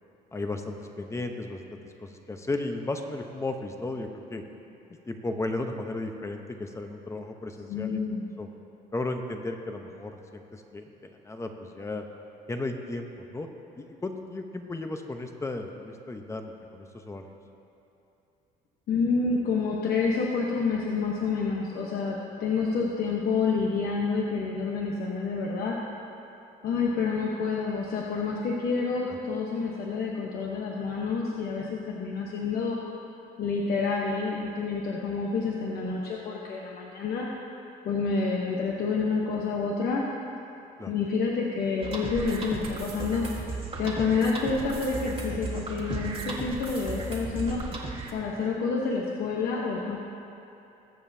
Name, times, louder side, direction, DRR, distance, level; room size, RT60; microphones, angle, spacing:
voice 1, 0.3-4.4 5.1-8.0 8.4-8.5 8.9-10.9 11.2-12.0 12.5-13.5 13.8-17.3 29.1-29.2 40.8-40.9, left 2 dB, 15° left, 5 dB, 0.8 m, -35 dB
voice 2, 7.7-8.2 18.9-25.8 26.6-32.8 33.4-37.3 37.8-40.0 40.9-43.3 43.8-47.6 48.1-50.0, left 4 dB, 65° left, -2 dB, 1.1 m, -28 dB
sound 1, 41.8-48.1, right 3 dB, 35° right, 1.6 m, -35 dB
21.0 x 7.2 x 2.8 m, 2.9 s
cardioid pair, 110°, 17 cm